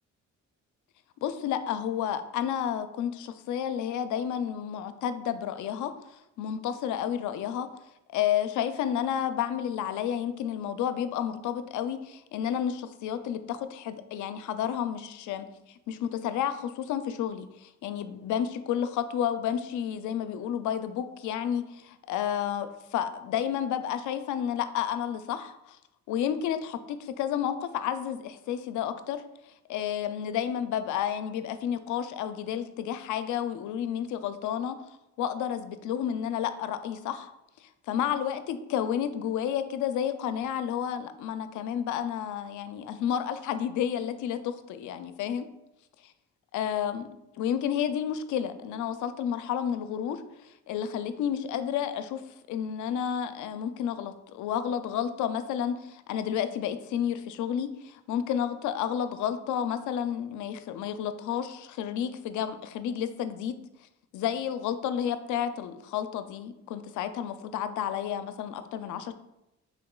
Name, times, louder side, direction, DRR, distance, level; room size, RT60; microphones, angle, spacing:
voice 1, 1.2-5.9 6.4-7.7 8.1-15.4 15.9-25.8 26.1-29.2 29.7-34.8 35.2-37.3 37.6-45.5 46.5-47.1 47.4-52.2 52.5-63.6 64.1-69.1, left 9 dB, 80° left, 10 dB, 0.5 m, -31 dB
5.8 x 3.5 x 2.3 m, 0.89 s
cardioid pair, 90°, 30 cm